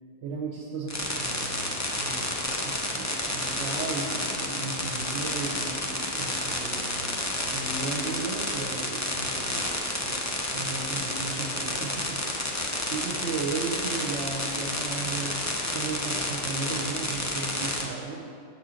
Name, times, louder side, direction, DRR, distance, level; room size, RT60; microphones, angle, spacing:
voice 1, 0.2-15.4 15.7-18.6, right 4 dB, 70° right, -3 dB, 1.0 m, -36 dB
sound 1, 0.9-17.9, left 1 dB, 20° left, 0.5 m, -30 dB
6.7 x 4.3 x 6.2 m, 2.4 s
omnidirectional pair, 1.2 m